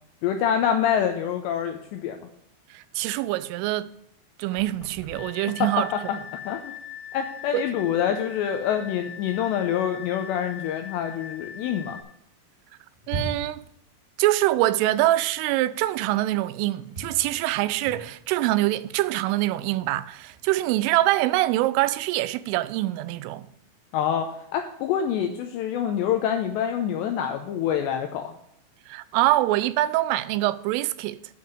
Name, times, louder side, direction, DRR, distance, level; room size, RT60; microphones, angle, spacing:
voice 1, 0.2-2.3 5.6-6.2 6.5-6.7 7.1-12.0 23.9-28.4, left 9 dB, 90° left, 2.5 m, -26 dB
voice 2, 2.7-3.9 4.4-5.9 7.5-7.7 13.1-13.6 14.2-23.5 28.9-31.2, right 16 dB, 85° right, 3.1 m, -24 dB
sound 1, 4.4-12.0, left 8 dB, 25° left, 3.5 m, -41 dB
sound 2, 13.0-13.7 15.5-15.6 16.0-16.1 16.9-20.4, right 2 dB, 20° right, 3.0 m, -37 dB
9.6 x 5.5 x 7.9 m
omnidirectional pair, 5.8 m